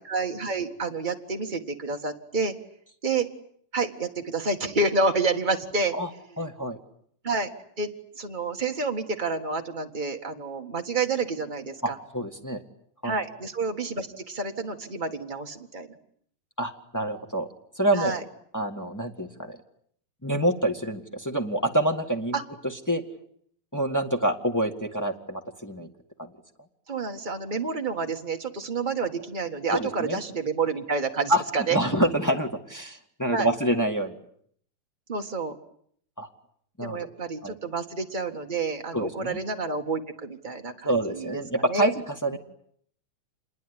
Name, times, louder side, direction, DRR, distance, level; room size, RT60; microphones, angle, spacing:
voice 1, 0.0-2.5 3.0-3.3 3.7-5.9 7.2-7.5 7.8-7.9 8.2-12.0 13.0-15.9 17.9-18.2 22.3-22.4 26.9-31.8 33.3-33.5 35.1-35.6 36.8-41.9, right 4 dB, 40° right, 4 dB, 0.6 m, -29 dB
voice 2, 6.4-6.8 11.8-12.6 13.0-13.1 16.6-17.5 17.8-18.1 18.5-19.6 20.2-22.4 22.9-23.0 23.7-25.9 26.2-26.3 29.7-30.2 31.3-34.2 36.2-36.3 36.8-37.0 37.4-37.6 38.9-39.4 40.8-42.4, right 1 dB, 20° left, 2 dB, 0.5 m, -27 dB
27.0 x 21.5 x 9.9 m, 0.67 s
omnidirectional pair, 4.0 m